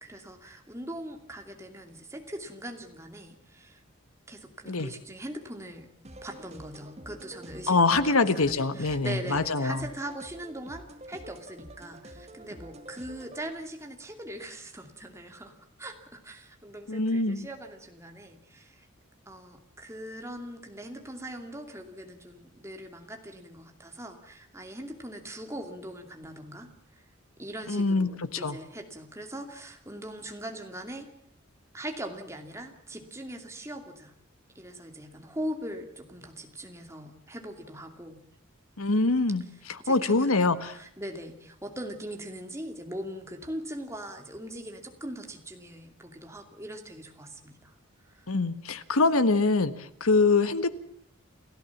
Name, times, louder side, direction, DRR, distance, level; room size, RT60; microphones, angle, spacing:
voice 1, 0.0-3.8 4.3-5.9 6.2-18.9 19.3-27.0 27.4-31.1 31.7-34.1 34.5-38.2 39.8-47.7 48.0-48.3, right 1 dB, 15° right, 4 dB, 2.5 m, -41 dB
sound 1, 6.0-13.4, right 1 dB, 30° right, 1.8 m, -47 dB
voice 2, 7.7-9.9 16.9-17.4 27.7-28.6 38.8-39.4 39.9-40.8 48.3-50.7, left 3 dB, 90° left, 12 dB, 1.5 m, -24 dB
29.5 x 13.5 x 7.3 m, 0.68 s
head